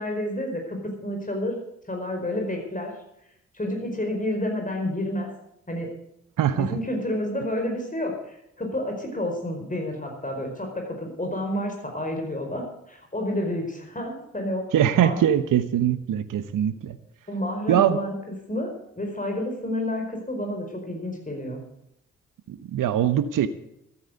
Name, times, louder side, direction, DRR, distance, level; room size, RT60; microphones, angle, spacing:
voice 1, 0.0-1.6 1.8-2.9 3.5-5.3 5.7-5.9 6.5-14.7 15.0-15.2 17.3-21.6, left 1 dB, 20° left, 2 dB, 4.9 m, -30 dB
voice 2, 6.4-6.7 14.7-17.0 17.7-18.0 22.5-23.5, right 10 dB, 65° right, 13 dB, 1.0 m, -22 dB
14.0 x 9.0 x 8.1 m, 0.78 s
hypercardioid pair, 40°, 35 cm